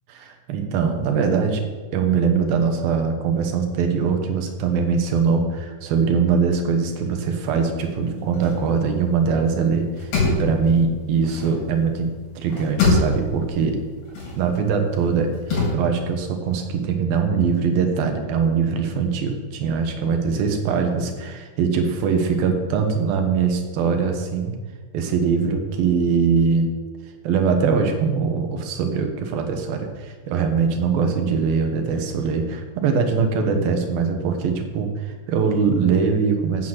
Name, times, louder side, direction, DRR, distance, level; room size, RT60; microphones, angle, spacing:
voice 1, 0.1-1.6 1.9-13.8 14.4-24.5 24.9-26.7 27.2-36.7, right 5 dB, 80° right, 5 dB, 3.0 m, -22 dB
sound 1, 7.8-9.5 9.8-12.0 12.3-15.7, left 3 dB, 90° left, 5.5 m, -25 dB
8.4 x 7.9 x 7.4 m, 1.4 s
omnidirectional pair, 4.2 m